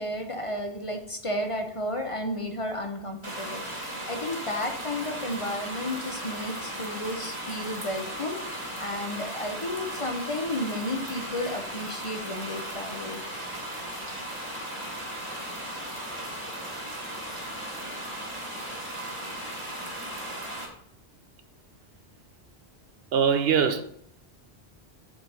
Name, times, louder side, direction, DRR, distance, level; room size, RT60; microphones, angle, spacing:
voice 1, 0.0-13.2, left 1 dB, 30° left, 0.8 m, -33 dB
sound 1, 3.2-20.7, right 1 dB, 25° right, 1.9 m, -36 dB
voice 2, 23.1-23.8, right 7 dB, 70° right, 0.9 m, -22 dB
7.5 x 4.6 x 5.2 m
omnidirectional pair, 1.1 m